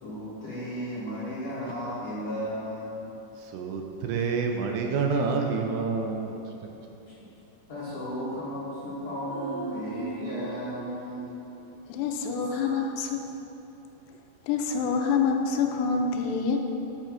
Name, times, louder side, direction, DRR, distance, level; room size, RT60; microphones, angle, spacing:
voice 1, 0.0-3.2 7.1-7.2 7.7-11.4 12.5-12.7, equal, 55° left, -9 dB, 1.8 m, -35 dB
voice 2, 3.4-6.3, right 5 dB, 90° right, 2 dB, 2.9 m, -28 dB
sound 1, 9.3-12.6 12.8-12.9, right 3 dB, 75° right, 2.8 m, -39 dB
voice 3, 11.9-13.3 14.4-16.6, left 5 dB, 80° left, 3 dB, 2.7 m, -26 dB
7.4 x 6.7 x 5.8 m, 3.0 s
omnidirectional pair, 5.0 m